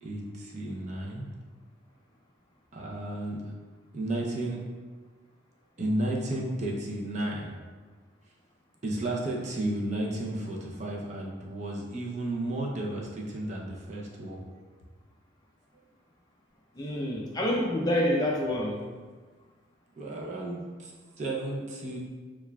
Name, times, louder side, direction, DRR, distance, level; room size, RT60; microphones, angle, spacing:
voice 1, 0.0-1.2 2.7-3.4 3.9-4.6 5.8-7.5 8.8-14.4 20.0-20.9 21.2-22.0, right 1 dB, 35° right, -2 dB, 0.5 m, -33 dB
voice 2, 16.8-18.8, left 1 dB, 20° left, -2 dB, 0.4 m, -27 dB
6.7 x 2.4 x 2.3 m, 1.5 s
head